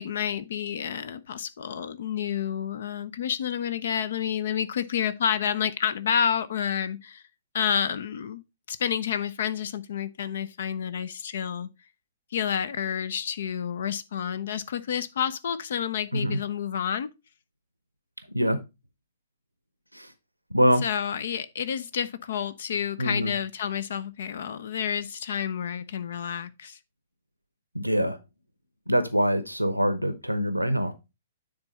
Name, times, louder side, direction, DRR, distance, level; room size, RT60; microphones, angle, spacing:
voice 1, 0.0-7.2 7.5-8.4 8.7-11.7 12.3-17.1 20.8-26.8, left 8 dB, 55° left, 0.5 m, -29 dB
voice 2, 23.0-23.3 27.7-28.2 28.9-30.9, equal, 90° right, 0.8 m, -24 dB
9.6 x 3.8 x 4.2 m
figure-of-eight pair, 115°, 0 cm